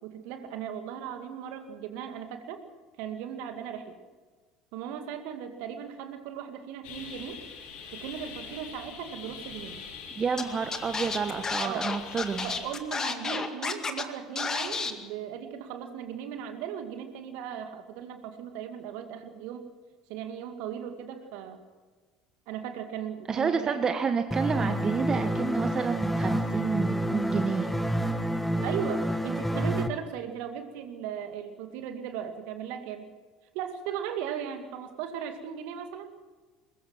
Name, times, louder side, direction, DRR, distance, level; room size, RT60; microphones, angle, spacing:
voice 1, 0.0-2.6 3.0-4.0 4.7-7.4 7.9-9.8 11.6-11.9 12.4-19.7 20.1-21.6 22.5-24.0 28.6-33.1 33.5-36.1, right 8 dB, 60° right, 7 dB, 2.3 m, -37 dB
sound 1, 6.8-12.8, left 5 dB, 60° left, 6.9 m, -43 dB
voice 2, 10.2-12.5 23.3-27.8, right 5 dB, 30° right, 8 dB, 1.3 m, -29 dB
Scratching (performance technique), 10.4-10.5 10.7-14.0 14.4-14.9, left 4 dB, 25° left, 2.0 m, -31 dB
sound 2, 24.3-29.9, equal, 5° left, 1.5 m, -28 dB
22.5 x 20.5 x 6.0 m, 1.3 s
figure-of-eight pair, 65°, 2 cm